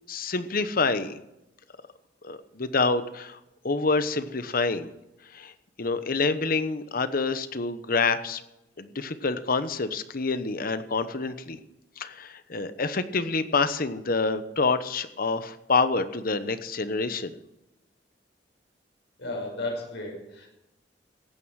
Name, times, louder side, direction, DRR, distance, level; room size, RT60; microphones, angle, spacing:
voice 1, 0.1-1.2 2.2-3.4 3.6-4.9 5.3-5.5 5.8-8.4 8.8-11.6 12.0-17.4, left 4 dB, 55° left, 11 dB, 1.0 m, -27 dB
voice 2, 19.2-20.5, left 2 dB, 75° left, 1 dB, 5.7 m, -34 dB
16.0 x 9.4 x 6.4 m, 0.92 s
head